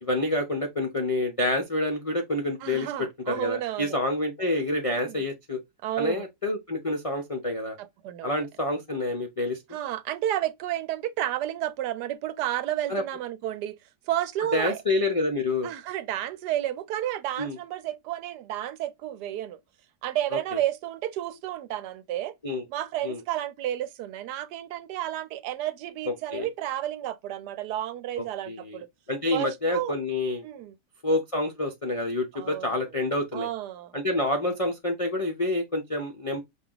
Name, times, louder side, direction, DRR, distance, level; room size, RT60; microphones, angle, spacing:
voice 1, 0.0-5.6 6.0-7.8 8.2-9.6 12.9-13.0 14.5-15.7 17.4-17.6 20.3-20.6 22.4-22.6 23.0-23.2 26.1-26.5 28.2-28.8 29.1-30.4 31.0-33.5 33.9-36.4, left 2 dB, 45° left, 0.4 m, -28 dB
voice 2, 2.6-4.0 4.9-5.2 5.8-6.3 7.8-8.4 9.7-13.8 14.1-14.8 15.6-19.6 20.0-22.3 22.7-28.9 29.3-29.9 30.4-30.7 32.3-32.8 33.3-34.0, right 12 dB, 80° right, 1.2 m, -31 dB
5.7 x 2.4 x 3.8 m
omnidirectional pair, 1.8 m